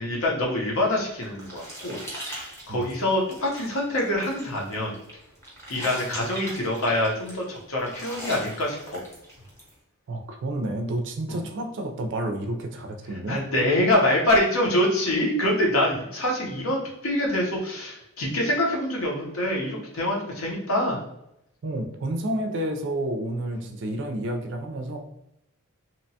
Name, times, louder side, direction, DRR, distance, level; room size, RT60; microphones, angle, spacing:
voice 1, 0.0-4.9 5.7-9.0 11.3-11.4 13.3-21.0 23.5-23.7, left 1 dB, 65° left, -1 dB, 0.7 m, -25 dB
sound 1, 0.8-9.7, equal, 10° left, 0.8 m, -41 dB
voice 2, 10.1-13.4 21.6-25.0, right 1 dB, 55° right, 4 dB, 0.4 m, -30 dB
2.8 x 2.1 x 2.7 m, 0.81 s
head